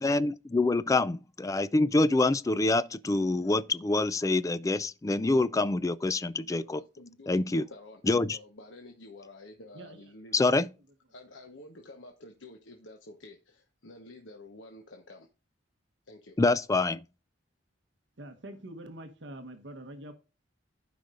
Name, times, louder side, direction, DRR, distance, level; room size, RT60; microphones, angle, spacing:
voice 1, 0.0-6.8 7.3-7.6 8.1-8.4 10.3-10.7 16.4-17.0, left 2 dB, 15° left, 0.3 m, -26 dB
voice 2, 6.5-8.0 8.3-10.7 11.1-15.3 16.1-16.4, left 2 dB, 80° left, 1.2 m, -50 dB
voice 3, 18.2-20.1, right 1 dB, 70° right, 1.1 m, -44 dB
15.0 x 5.1 x 2.5 m
head